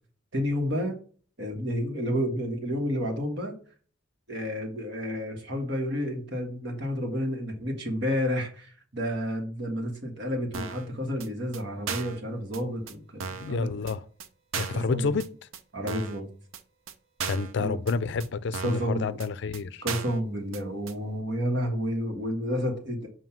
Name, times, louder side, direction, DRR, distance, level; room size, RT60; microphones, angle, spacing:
voice 1, 0.3-1.0 1.4-3.5 4.3-13.7 14.7-15.1 15.7-16.3 17.6-17.8 18.6-19.2 19.8-23.1, equal, 60° right, 1.5 m, -30 dB
sound 1, 10.5-10.9 11.2-11.3 11.5-11.6 11.9-12.2 12.5-12.6 12.9-13.0 13.2-13.5 13.9-14.0 14.2-14.3 14.5-14.9 15.2-15.3 15.5-15.6 15.9-16.2 16.5-16.6 16.9-17.0 17.2-17.5 17.9-18.0 18.2-18.3 18.5-18.9 19.2-19.3 19.5-19.6 19.9-20.2 20.5-20.6 20.9-21.0, right 6 dB, 85° right, 0.6 m, -35 dB
voice 2, 13.4-14.0 14.6-15.2 17.3-19.8, left 4 dB, 60° left, 0.4 m, -29 dB
7.3 x 2.7 x 5.8 m
head